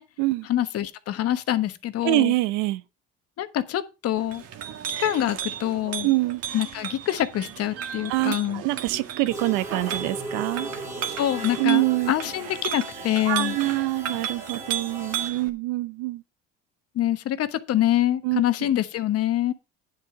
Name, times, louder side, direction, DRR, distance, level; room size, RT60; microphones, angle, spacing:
voice 1, 0.5-2.3 3.4-4.4 5.0-6.1 6.5-8.6 11.1-13.6 16.9-19.5, left 12 dB, 55° left, 1.2 m, -25 dB
voice 2, 2.0-2.8 6.0-6.4 8.1-10.7 11.6-12.1 13.3-16.2 18.2-18.4, right 19 dB, 85° right, 0.8 m, -25 dB
Chink clink, 4.2-15.5, right 9 dB, 55° right, 1.7 m, -35 dB
sound 1, 9.3-15.3, right 2 dB, 10° right, 2.5 m, -37 dB
10.0 x 7.6 x 4.8 m
cardioid pair, 110°, 29 cm